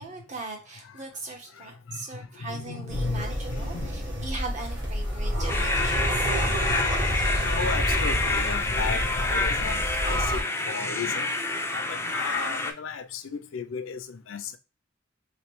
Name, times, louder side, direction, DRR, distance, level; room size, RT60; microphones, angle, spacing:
voice 1, 0.0-6.3, right 3 dB, 40° right, 1.1 m, -39 dB
voice 2, 2.4-4.2 6.2-6.6 7.1-11.3 11.7-14.6, left 5 dB, 85° left, 0.5 m, -35 dB
sound 1, 2.9-10.4, equal, 65° right, 1.4 m, -29 dB
sound 2, 5.5-12.7, left 2 dB, 15° left, 0.3 m, -28 dB
3.1 x 3.1 x 3.1 m
head